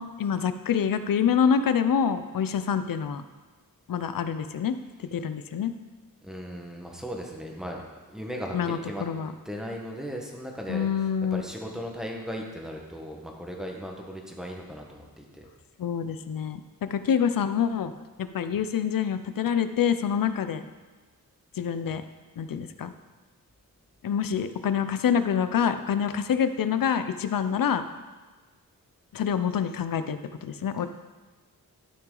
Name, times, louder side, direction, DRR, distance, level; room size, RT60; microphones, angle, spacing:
voice 1, 0.0-3.2 3.9-5.7 8.5-9.3 10.7-11.4 15.8-17.9 18.2-20.6 21.5-22.0 22.4-22.9 24.0-27.8 29.1-30.9, left 7 dB, 70° left, 11 dB, 0.6 m, -26 dB
voice 2, 6.2-7.8 8.1-9.0 9.4-10.9 11.3-15.5, equal, ahead, 0 dB, 1.3 m, -37 dB
12.5 x 6.0 x 3.8 m, 1.3 s
wide cardioid pair, 125°, 35 cm